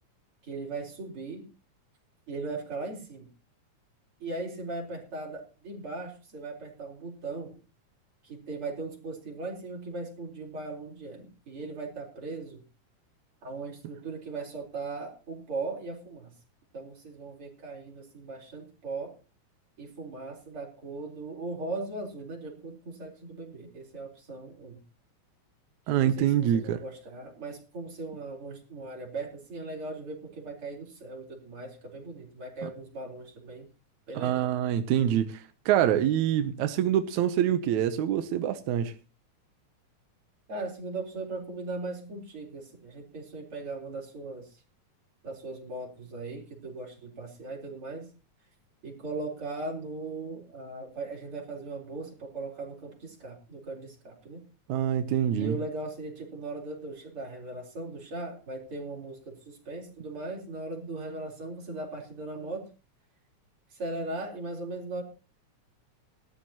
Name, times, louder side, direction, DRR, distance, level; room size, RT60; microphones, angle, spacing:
voice 1, 0.4-1.4 2.3-3.3 4.2-7.5 8.2-12.6 13.4-16.3 16.7-19.1 19.8-24.8 25.9-33.7 34.1-34.5 40.5-44.5 45.2-48.1 48.8-54.4 55.4-62.7 63.7-65.0, right 3 dB, 45° right, 4.8 m, -38 dB
voice 2, 25.9-26.8 32.6-32.7 34.2-38.9 54.7-55.6, right 10 dB, 80° right, 2.1 m, -25 dB
19.0 x 12.5 x 2.9 m
omnidirectional pair, 3.4 m